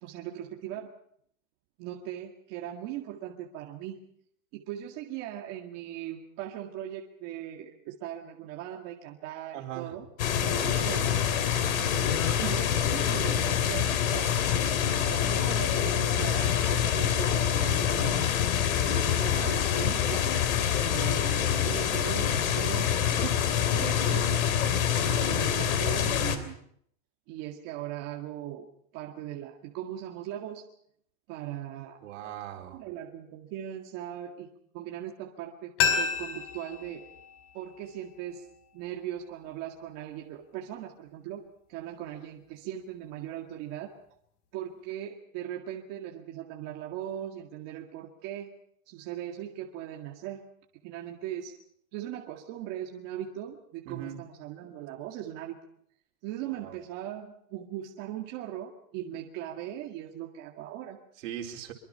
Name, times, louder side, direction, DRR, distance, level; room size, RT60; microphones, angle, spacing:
voice 1, 0.0-0.9 1.8-4.0 4.5-11.1 12.4-14.3 15.0-18.3 18.7-20.2 20.8-21.2 21.6-24.4 25.0-26.6 27.3-28.7 28.9-30.6 31.3-32.0 32.7-34.5 34.7-37.0 37.5-38.5 38.7-41.4 41.7-43.9 44.5-48.5 48.9-50.4 50.8-51.6 51.9-55.6 56.2-61.0, right 11 dB, 40° right, 1 dB, 2.0 m, -39 dB
voice 2, 9.5-10.0 32.0-32.8 53.8-54.2 56.4-56.8 61.2-61.7, right 11 dB, 65° right, 1 dB, 4.6 m, -40 dB
sound 1, 10.2-26.4, left 9 dB, 90° left, 3.3 m, -26 dB
sound 2, 35.8-38.6 38.9-39.0, left 6 dB, 45° left, 4.3 m, -31 dB
24.5 x 24.0 x 5.7 m, 0.67 s
supercardioid pair, 165°, 40 cm